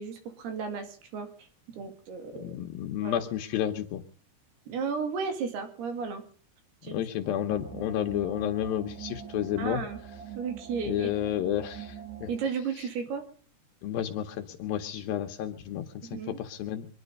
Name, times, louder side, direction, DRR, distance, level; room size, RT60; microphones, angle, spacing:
voice 1, 0.0-2.6 3.0-3.2 4.7-6.2 6.8-7.0 9.6-10.0 10.4-11.1 12.3-13.2 16.1-16.4, right 5 dB, 85° right, 7 dB, 4.2 m, -34 dB
voice 2, 2.4-4.0 6.9-9.8 10.9-12.3 13.8-16.9, left 11 dB, 75° left, 5 dB, 2.5 m, -31 dB
sound 1, 7.2-12.5, right 8 dB, 60° right, 2.3 m, -43 dB
25.0 x 10.5 x 5.3 m, 0.43 s
omnidirectional pair, 4.5 m